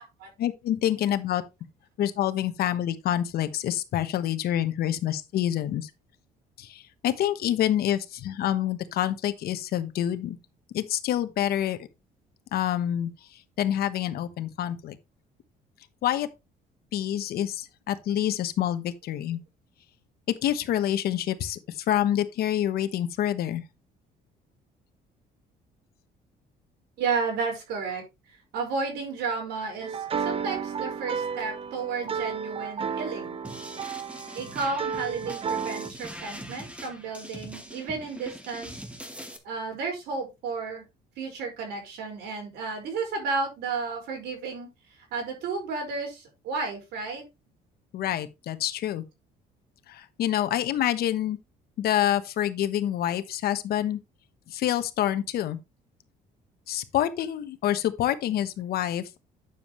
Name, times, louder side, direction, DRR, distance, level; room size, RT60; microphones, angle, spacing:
voice 1, 0.4-1.4 2.0-5.9 6.6-10.4 10.7-11.8 12.5-13.1 13.6-15.0 16.0-16.3 16.9-19.4 20.4-21.6 21.9-23.6 47.9-49.0 49.9-51.4 51.8-54.0 54.5-55.6 56.7-59.2, left 11 dB, 65° left, 1.1 m, -27 dB
voice 2, 27.0-33.4 34.3-38.8 39.4-40.9 41.2-47.2, right 4 dB, 80° right, 5.2 m, -32 dB
sound 1, 29.8-35.9, right 6 dB, 35° right, 0.7 m, -32 dB
sound 2, 33.4-39.4, right 1 dB, 5° right, 2.1 m, -42 dB
9.2 x 7.2 x 3.1 m
cardioid pair, 110°, 17 cm